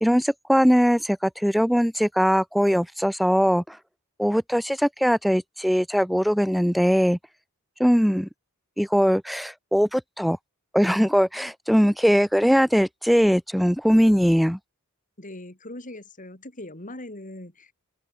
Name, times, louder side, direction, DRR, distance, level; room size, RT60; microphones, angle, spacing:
voice 1, 0.0-3.8 4.2-7.2 7.8-8.3 8.8-10.4 10.7-14.6, equal, ahead, 0.3 m, -21 dB
voice 2, 15.2-17.7, left 1 dB, 35° left, 4.3 m, -40 dB
open air
head